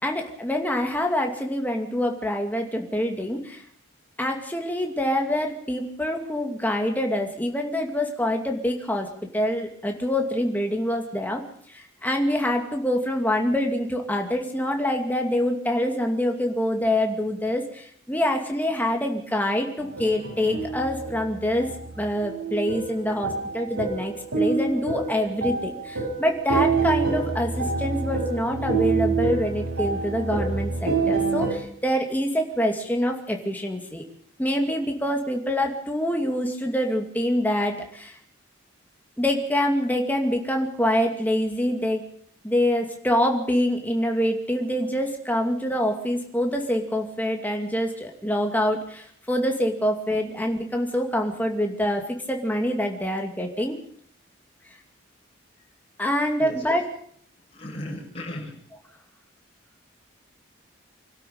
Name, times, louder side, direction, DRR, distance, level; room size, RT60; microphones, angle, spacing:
voice 1, 0.0-3.6 4.2-21.7 22.0-34.0 34.4-38.2 39.2-42.0 42.4-53.8 56.0-56.8, left 1 dB, 10° left, 2 dB, 2.5 m, -25 dB
sound 1, 19.8-31.5, right 4 dB, 90° right, 6.4 m, -27 dB
voice 2, 57.5-58.6, left 1 dB, 30° left, -2 dB, 7.0 m, -36 dB
25.5 x 12.5 x 8.7 m, 0.65 s
head